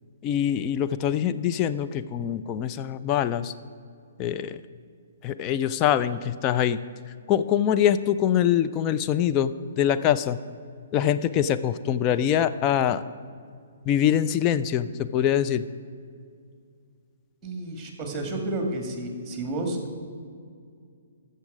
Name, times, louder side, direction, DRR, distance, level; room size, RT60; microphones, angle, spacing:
voice 1, 0.2-3.5 4.2-4.6 5.2-6.8 7.3-10.4 10.9-13.0 13.9-15.6, left 10 dB, 25° left, 11 dB, 0.4 m, -24 dB
voice 2, 17.4-20.0, right 1 dB, 15° right, 3 dB, 2.0 m, -31 dB
14.0 x 6.7 x 5.0 m, 2.2 s
figure-of-eight pair, 125°, 0 cm